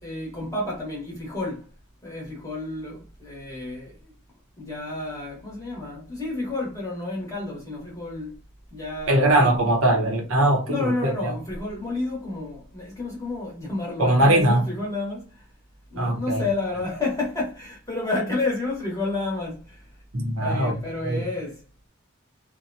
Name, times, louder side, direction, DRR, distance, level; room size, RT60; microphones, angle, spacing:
voice 1, 0.0-1.7 2.0-4.1 4.6-8.4 8.7-9.5 10.7-15.5 15.9-20.0 20.4-21.6, left 2 dB, 15° left, 1.1 m, -30 dB
voice 2, 9.1-11.4 14.0-14.7 16.0-16.5 20.1-20.7 21.0-21.2, right 1 dB, 80° right, 0.8 m, -21 dB
2.8 x 2.1 x 2.6 m
head